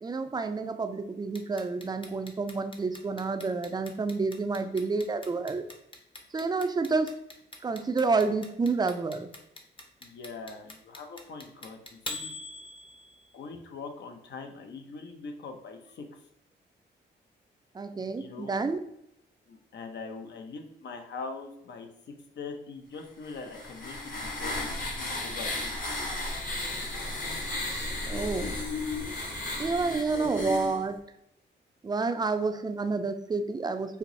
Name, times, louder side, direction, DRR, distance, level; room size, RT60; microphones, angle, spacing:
voice 1, 0.0-5.6 6.3-7.2 7.6-9.3 17.7-18.8 28.1-28.5 29.6-31.0 31.8-34.0, right 4 dB, 20° right, 9 dB, 0.3 m, -29 dB
Clock, 1.3-13.3, left 2 dB, 25° left, 0.7 m, -42 dB
voice 2, 10.0-12.3 13.3-16.3 18.2-18.6 19.5-21.9 22.4-24.7 25.2-25.7 29.8-30.4, left 4 dB, 65° left, 4 dB, 0.6 m, -42 dB
sound 1, 23.2-30.8, left 2 dB, 45° left, 1.0 m, -34 dB
4.4 x 2.0 x 2.6 m, 0.80 s
cardioid pair, 60°, 20 cm